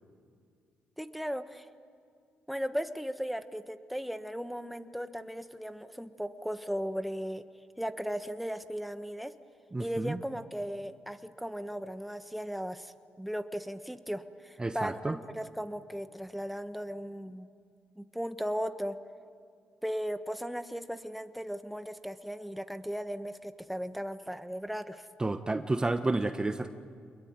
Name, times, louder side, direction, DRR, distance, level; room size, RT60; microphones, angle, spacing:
voice 1, 1.0-1.7 2.5-7.4 7.8-9.3 9.8-17.5 18.0-19.0 19.8-25.1, equal, ahead, 9 dB, 1.3 m, -37 dB
voice 2, 9.7-10.2 14.6-15.2 25.2-26.7, right 2 dB, 20° right, 9 dB, 1.1 m, -30 dB
25.5 x 21.5 x 9.6 m, 2.2 s
cardioid pair, 70°, 4 cm